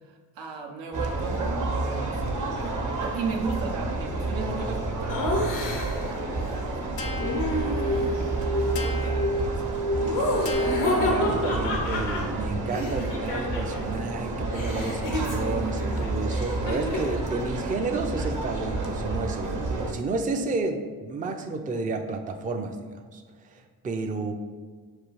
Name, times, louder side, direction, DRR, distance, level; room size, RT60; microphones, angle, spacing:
voice 1, 0.0-9.7, right 4 dB, 80° right, 2 dB, 0.7 m, -37 dB
sound 1, 0.9-19.9, right 2 dB, 45° right, 0.8 m, -30 dB
Laughter, 5.1-6.1 7.2-8.2 10.0-13.9 14.1-17.2, left 2 dB, 85° left, 0.9 m, -30 dB
sound 2, 7.0-11.8, equal, 60° left, 0.6 m, -30 dB
voice 2, 11.0-23.2 23.5-24.3, right 3 dB, 20° right, 4 dB, 0.4 m, -31 dB
6.4 x 2.4 x 3.1 m, 1.5 s
supercardioid pair, 50°, 43 cm